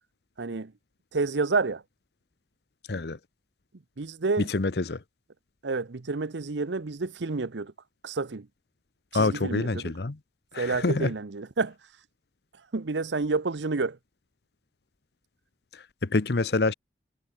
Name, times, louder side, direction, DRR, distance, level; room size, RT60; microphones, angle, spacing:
voice 1, 0.4-0.7 1.1-1.8 4.0-4.5 5.6-7.7 8.0-8.5 9.1-9.9 10.6-11.7 12.7-14.0, right 3 dB, 85° right, 0.8 m, -29 dB
voice 2, 4.5-5.0 9.1-10.2 10.5-11.1 15.7-16.7, left 3 dB, 65° left, 0.8 m, -27 dB
head